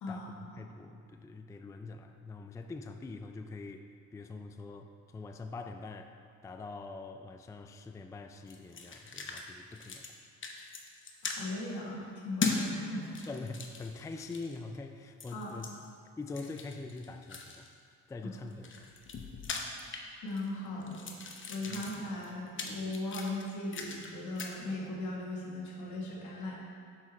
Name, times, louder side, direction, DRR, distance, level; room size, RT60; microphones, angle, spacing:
voice 1, 0.1-6.1 6.4-10.0 13.3-15.7 16.2-17.7 18.1-18.9, left 3 dB, 10° left, 7 dB, 0.3 m, -44 dB
sound 1, 8.5-9.4 9.7-10.2 10.4-11.4 12.4-12.6 13.0-14.6 15.2-15.7 16.3-17.7 18.4-20.5 20.8-24.1 24.4-24.6, left 4 dB, 40° left, 0.9 m, -39 dB
voice 2, 11.2-13.3 15.3-15.5 18.2-18.3 20.2-21.1 21.5-26.5, left 2 dB, 75° left, -3 dB, 1.7 m, -38 dB
7.2 x 5.9 x 4.3 m, 2.2 s
cardioid pair, 90°, 30 cm